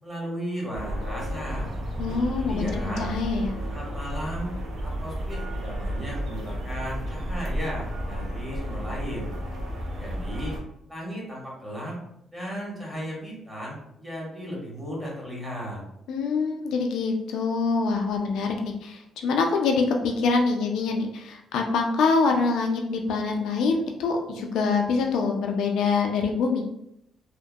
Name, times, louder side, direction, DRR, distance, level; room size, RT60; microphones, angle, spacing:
voice 1, 0.0-1.7 2.3-3.1 3.7-4.5 4.8-9.3 10.0-10.6 10.9-12.0 12.3-15.8, equal, 15° right, -4 dB, 1.1 m, -35 dB
sound 1, 0.7-10.6, equal, 60° right, 0.5 m, -32 dB
voice 2, 2.0-3.5 16.1-26.7, left 4 dB, 80° left, 2 dB, 0.3 m, -25 dB
2.7 x 2.0 x 2.2 m, 0.77 s
cardioid pair, 90°, 0 cm